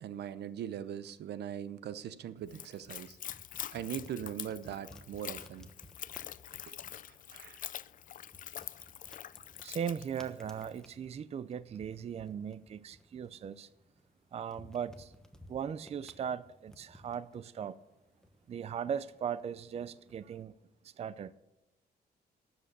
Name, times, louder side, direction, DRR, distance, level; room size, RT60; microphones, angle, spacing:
voice 1, 0.0-3.2 3.7-5.7 6.7-6.8 7.3-7.6, right 9 dB, 80° right, 15 dB, 0.7 m, -40 dB
sound 1, 2.2-20.4, left 1 dB, 5° left, 1.1 m, -59 dB
Splash splatter / Trickle dribble, 2.5-10.8, left 11 dB, 55° left, 0.4 m, -45 dB
voice 2, 9.6-13.7 14.3-15.1 15.5-17.8 18.5-20.5 20.8-21.3, right 8 dB, 40° right, 16 dB, 0.4 m, -38 dB
12.5 x 7.8 x 6.8 m, 0.98 s
cardioid pair, 145°, 17 cm